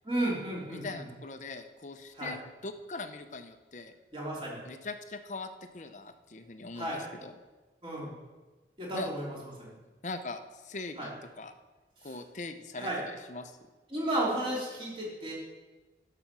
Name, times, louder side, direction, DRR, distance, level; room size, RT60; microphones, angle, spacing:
voice 1, 0.0-1.0 2.2-2.3 4.1-4.6 6.7-7.0 7.8-8.1 8.8-9.7 11.0-11.1 12.8-13.0 13.9-15.3, right 1 dB, 30° right, -4 dB, 3.2 m, -33 dB
voice 2, 0.7-3.9 4.6-7.4 8.9-9.1 10.0-11.1 11.4-11.5 12.0-13.6, left 3 dB, 45° left, 8 dB, 0.7 m, -41 dB
11.5 x 6.8 x 6.0 m, 1.3 s
head